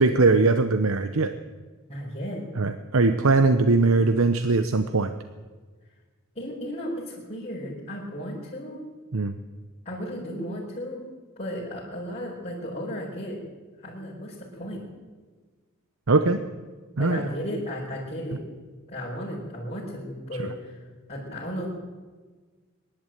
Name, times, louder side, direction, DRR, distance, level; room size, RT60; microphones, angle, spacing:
voice 1, 0.0-1.3 2.6-5.1 9.1-9.3 16.1-16.4 17.0-17.3, right 3 dB, 75° right, 9 dB, 0.9 m, -21 dB
voice 2, 1.9-2.4 6.4-8.8 9.8-11.0 11.4-13.4 13.8-14.8 17.0-18.4 18.9-20.8 21.1-21.7, equal, 30° left, -8 dB, 5.6 m, -34 dB
24.0 x 11.5 x 9.2 m, 1.4 s
head